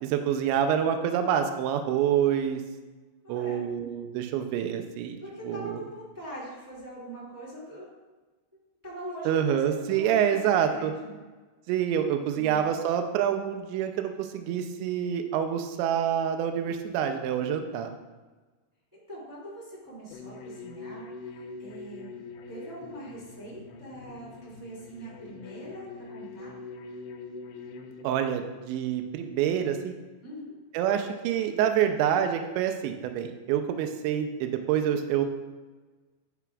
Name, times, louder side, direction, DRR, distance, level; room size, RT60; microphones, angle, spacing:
voice 1, 0.0-2.6 3.3-5.2 5.4-5.8 9.3-10.9 11.7-17.9 28.0-29.9 30.7-35.3, right 9 dB, 90° right, 6 dB, 2.6 m, -27 dB
voice 2, 3.2-3.6 5.2-7.9 8.8-11.2 12.3-12.7 18.9-22.2 22.5-26.5 30.2-30.5, right 1 dB, 20° right, -7 dB, 0.5 m, -42 dB
sound 1, 20.1-28.0, left 4 dB, 90° left, 2.4 m, -43 dB
12.0 x 9.1 x 2.4 m, 1.3 s
omnidirectional pair, 5.8 m